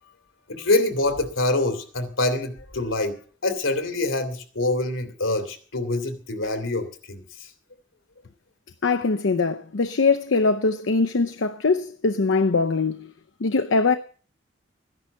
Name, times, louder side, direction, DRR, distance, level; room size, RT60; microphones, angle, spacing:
voice 1, 0.5-3.2 3.4-7.5, left 2 dB, 90° left, 2.5 m, -25 dB
voice 2, 8.8-13.1 13.4-14.0, left 4 dB, 75° left, 0.6 m, -22 dB
13.5 x 11.0 x 6.9 m
head